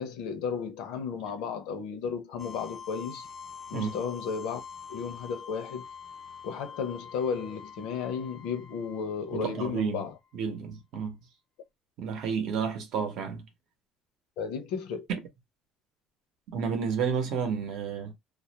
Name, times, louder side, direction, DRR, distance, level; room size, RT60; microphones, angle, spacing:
voice 1, 0.0-3.3 3.7-4.6 4.9-5.8 6.4-10.2 14.4-15.1, left 6 dB, 80° left, 0.7 m, -34 dB
sound 1, 2.4-10.2, left 6 dB, 20° left, 0.4 m, -45 dB
voice 2, 9.3-10.0 10.3-11.2 12.0-13.4 15.1-15.2 16.5-18.1, right 6 dB, 50° right, 0.7 m, -31 dB
2.3 x 2.0 x 2.8 m
cardioid pair, 180°, 0 cm